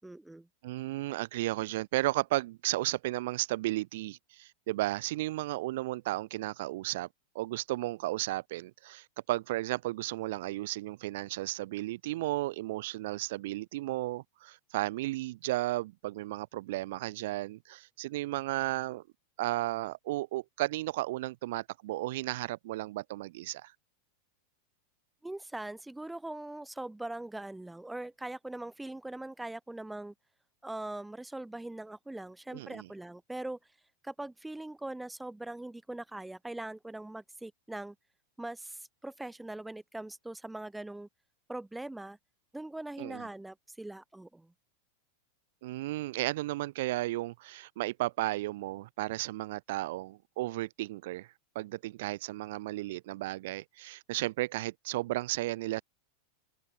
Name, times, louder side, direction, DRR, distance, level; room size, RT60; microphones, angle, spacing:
voice 1, 0.0-0.5 25.2-30.1 30.6-33.6 34.0-37.9 38.4-41.1 41.5-42.2 42.5-44.5, right 2 dB, 5° right, 6.6 m, -41 dB
voice 2, 0.6-7.1 7.4-19.0 19.4-23.7 32.5-32.9 43.0-43.2 45.6-51.3 51.6-55.8, right 17 dB, 55° right, 3.4 m, -34 dB
figure-of-eight pair, 90°, 0 cm